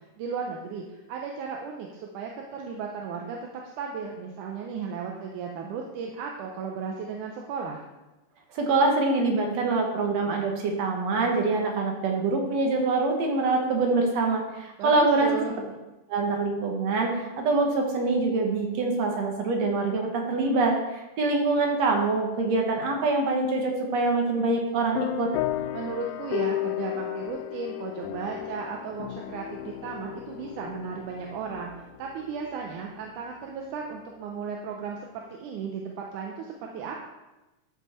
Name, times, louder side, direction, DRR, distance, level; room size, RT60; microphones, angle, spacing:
voice 1, 0.0-3.4 3.8-7.8 14.8-15.6 25.7-31.7 32.0-37.0, right 5 dB, 80° right, 1 dB, 2.3 m, -35 dB
voice 2, 8.5-15.3 16.1-25.3, right 3 dB, 60° right, 1 dB, 2.4 m, -25 dB
sound 1, 24.9-33.0, left 14 dB, 80° left, 1.9 m, -34 dB
12.5 x 5.5 x 4.4 m, 1.0 s
omnidirectional pair, 3.6 m